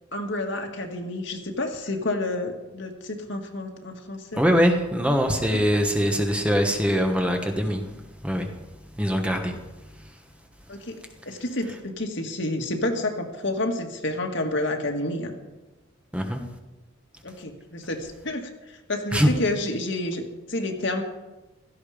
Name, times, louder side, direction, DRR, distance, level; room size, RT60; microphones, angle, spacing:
voice 1, 0.1-4.4 5.5-5.6 10.7-11.0 11.3-15.3 17.2-21.0, left 1 dB, 60° left, 3 dB, 2.2 m, -29 dB
voice 2, 4.3-7.9 8.2-8.5 9.0-9.5 16.1-16.4 19.1-19.3, equal, 5° right, 3 dB, 1.4 m, -22 dB
16.5 x 14.5 x 5.2 m, 1.1 s
head